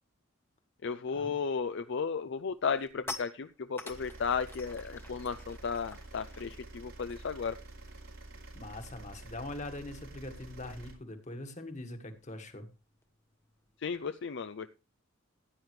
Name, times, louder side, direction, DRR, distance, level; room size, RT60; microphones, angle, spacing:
voice 1, 0.8-7.6 13.8-14.7, left 5 dB, 60° left, 11 dB, 0.5 m, -34 dB
sound 1, 1.7-1.9 2.3-8.3 8.5-8.8 9.0-14.1, left 3 dB, 10° left, 1.1 m, -50 dB
sound 2, 3.9-10.9, right 2 dB, 90° right, 4.3 m, -49 dB
voice 2, 8.5-12.7, left 2 dB, 35° left, 7 dB, 1.7 m, -42 dB
15.5 x 9.2 x 3.2 m, 0.29 s
head